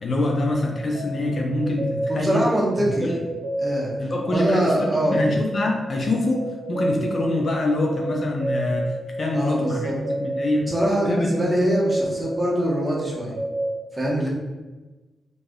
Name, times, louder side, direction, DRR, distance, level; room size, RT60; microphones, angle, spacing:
voice 1, 0.0-2.5 2.8-3.1 4.0-8.9 9.2-9.9 10.2-10.7 11.0-11.6, left 2 dB, 55° left, 0 dB, 0.5 m, -25 dB
sound 1, 0.5-13.8, right 1 dB, 75° right, 0.7 m, -31 dB
voice 2, 2.1-3.2 3.6-3.9 4.3-5.2 9.3-9.9 10.7-13.4 13.9-14.3, right 1 dB, 25° right, -4 dB, 0.9 m, -23 dB
3.2 x 2.5 x 2.3 m, 1.2 s
cardioid pair, 80°, 0 cm